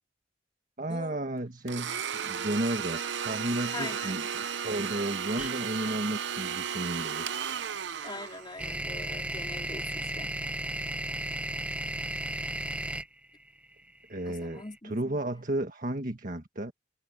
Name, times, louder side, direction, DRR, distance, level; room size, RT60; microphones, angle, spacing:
voice 1, 0.8-7.3 14.1-16.7, right 1 dB, 45° right, 1.6 m, -33 dB
Domestic sounds home sounds, 1.7-8.7, right 7 dB, 75° right, 0.8 m, -34 dB
voice 2, 3.7-4.1 5.8-6.0 8.0-10.3 14.3-15.2, left 2 dB, 25° left, 3.9 m, -42 dB
sound 1, 5.4-5.5 7.6-14.6, right 1 dB, 5° right, 0.9 m, -34 dB
head